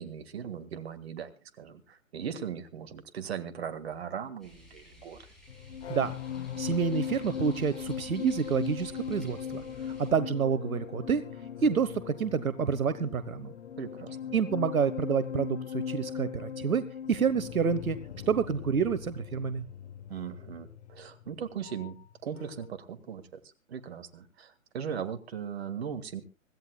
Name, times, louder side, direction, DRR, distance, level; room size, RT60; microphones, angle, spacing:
voice 1, 0.0-5.2 13.8-14.3 20.1-22.0 22.2-23.2 23.7-26.2, right 8 dB, 50° right, 10 dB, 1.9 m, -38 dB
sound 1, 4.4-10.1, left 1 dB, ahead, 6.9 m, -54 dB
sound 2, 5.5-22.1 22.4-22.7, left 8 dB, 55° left, 1.4 m, -39 dB
voice 2, 6.6-9.6 9.9-11.2 11.6-13.5 14.3-18.0 18.3-19.6, right 6 dB, 80° right, 12 dB, 1.2 m, -28 dB
25.5 x 14.5 x 2.3 m, 0.30 s
hypercardioid pair, 145°, 41 cm